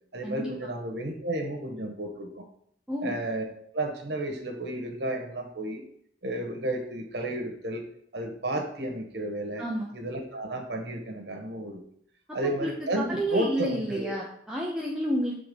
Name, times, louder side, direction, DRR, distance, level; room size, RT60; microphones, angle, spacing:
voice 1, 0.1-2.4 3.0-3.4 3.7-5.8 6.2-7.8 8.1-9.6 9.9-11.8 12.3-14.2, right 1 dB, 75° right, 2 dB, 1.3 m, -32 dB
voice 2, 9.6-9.9 12.4-12.7 13.0-15.4, right 1 dB, 5° right, -4 dB, 0.7 m, -30 dB
6.9 x 3.6 x 5.2 m, 0.67 s
head